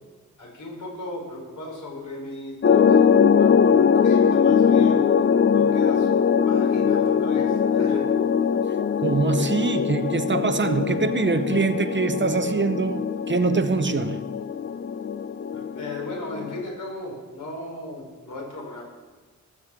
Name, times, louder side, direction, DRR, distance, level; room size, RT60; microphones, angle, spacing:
voice 1, 0.4-5.0 5.4-8.1 15.5-18.8, left 2 dB, 85° left, 5.5 m, -36 dB
sound 1, 2.6-16.6, left 7 dB, 40° left, 0.4 m, -21 dB
voice 2, 9.0-14.2, right 4 dB, 40° right, 0.7 m, -24 dB
18.5 x 6.4 x 7.5 m
wide cardioid pair, 115°, 30 cm